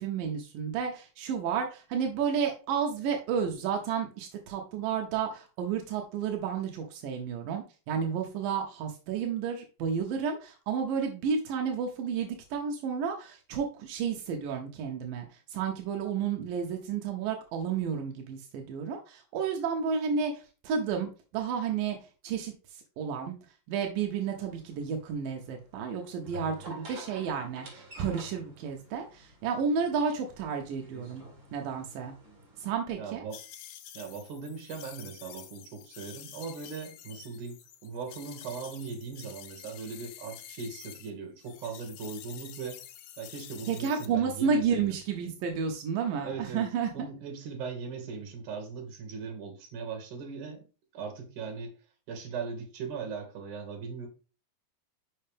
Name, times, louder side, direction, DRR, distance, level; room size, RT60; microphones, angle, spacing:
voice 1, 0.0-15.3 15.5-22.0 22.2-22.5 23.0-23.4 23.7-31.2 31.5-32.1 32.6-33.3 43.7-46.9, right 6 dB, 80° right, 2 dB, 2.0 m, -31 dB
sound 1, 24.1-32.7, right 1 dB, 35° right, 2.7 m, -49 dB
voice 2, 33.0-33.4 33.9-42.8 43.2-44.9 46.2-46.7 46.9-50.6 50.9-51.8 52.1-54.1, right 5 dB, 55° right, 2 dB, 2.7 m, -39 dB
sound 2, 33.3-41.1 41.4-44.1, left 11 dB, 75° left, 2.5 m, -48 dB
6.3 x 5.6 x 3.4 m, 0.33 s
omnidirectional pair, 5.2 m